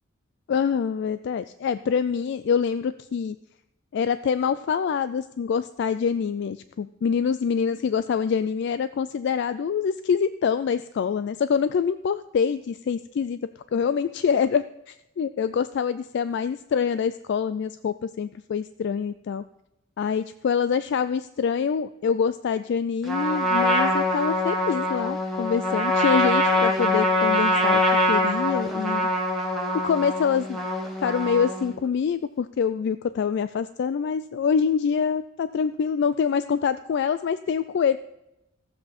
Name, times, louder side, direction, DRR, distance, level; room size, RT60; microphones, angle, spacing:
voice 1, 0.5-3.4 3.9-13.4 13.7-19.4 20.0-29.1 29.7-30.6 31.0-38.0, left 6 dB, 55° left, 13 dB, 0.3 m, -25 dB
Trumpet, 23.1-31.7, left 1 dB, ahead, 1.7 m, -24 dB
14.5 x 7.6 x 4.2 m, 0.89 s
head